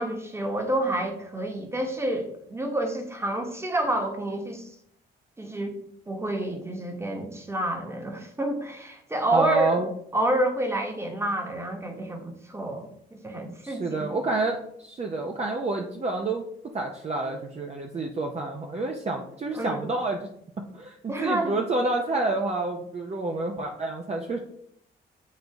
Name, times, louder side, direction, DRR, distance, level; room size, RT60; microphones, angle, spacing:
voice 1, 0.0-4.7 5.4-5.8 6.1-9.8 10.1-12.9 13.2-14.1 19.5-19.8 21.1-21.6, right 1 dB, 15° right, 4 dB, 1.3 m, -29 dB
voice 2, 9.3-9.9 13.6-16.4 16.7-20.3 20.7-24.4, right 2 dB, 35° right, 1 dB, 0.8 m, -28 dB
8.6 x 3.9 x 3.5 m, 0.71 s
cardioid pair, 90°, 20 cm